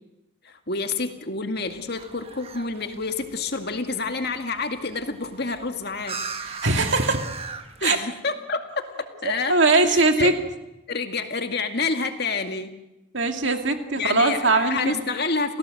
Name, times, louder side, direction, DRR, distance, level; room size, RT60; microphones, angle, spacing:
voice 1, 0.4-6.2 7.8-8.9 9.2-9.6 9.9-10.4 10.9-12.7 14.0-15.6, left 4 dB, 50° left, 6 dB, 2.2 m, -28 dB
sound 1, 1.6-8.0, right 5 dB, 30° right, 1.4 m, -39 dB
voice 2, 6.4-7.2 7.8-8.0 9.2-10.3 13.1-15.0, right 3 dB, 60° right, 5 dB, 2.4 m, -21 dB
28.5 x 17.0 x 7.8 m, 0.93 s
head